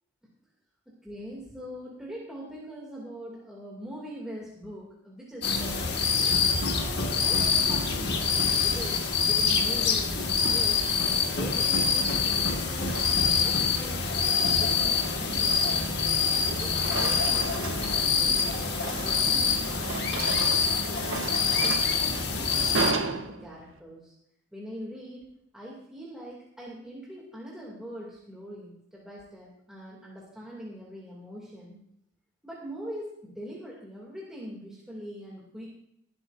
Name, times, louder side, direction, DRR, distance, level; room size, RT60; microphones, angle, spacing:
voice 1, 1.0-6.0 6.7-10.8 11.2-13.0 13.3-15.9 16.5-20.5 20.8-24.1 24.5-25.3 25.5-31.8 32.4-35.7, equal, 5° right, -5 dB, 2.6 m, -42 dB
sound 1, 5.4-22.9, left 5 dB, 55° left, 1.7 m, -25 dB
sound 2, 10.4-10.9 12.0-13.6 14.0-14.3 14.8-16.2 16.5-23.8, right 4 dB, 80° right, 1.2 m, -36 dB
21.0 x 11.5 x 2.7 m, 0.75 s
head